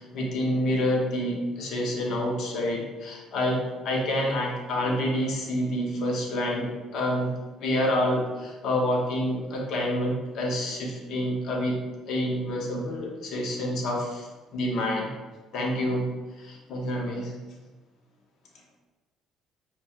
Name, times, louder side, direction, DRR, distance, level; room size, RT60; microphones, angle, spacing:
voice 1, 0.0-7.3 7.6-11.8 12.1-15.1 15.5-16.1 16.4-17.3, left 1 dB, 70° left, 0 dB, 0.8 m, -28 dB
5.3 x 2.3 x 2.4 m, 1.2 s
supercardioid pair, 80°, 0 cm